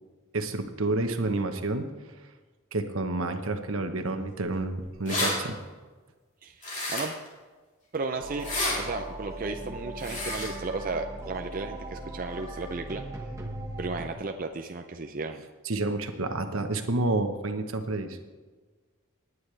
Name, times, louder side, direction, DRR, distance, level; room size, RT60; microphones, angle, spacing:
voice 1, 0.3-1.9 2.7-5.6 15.6-18.2, right 2 dB, 75° right, 6 dB, 1.1 m, -29 dB
sound 1, 4.6-4.7 4.9-5.3 6.6-7.3 8.3-8.8 10.0-10.5, left 2 dB, 35° left, 3.4 m, -30 dB
voice 2, 7.9-8.5 8.8-13.0 13.8-15.4, right 3 dB, 40° right, 4 dB, 0.5 m, -34 dB
sound 2, 8.2-14.1, right 1 dB, 15° right, 1.2 m, -39 dB
19.0 x 9.6 x 3.3 m, 1.3 s
head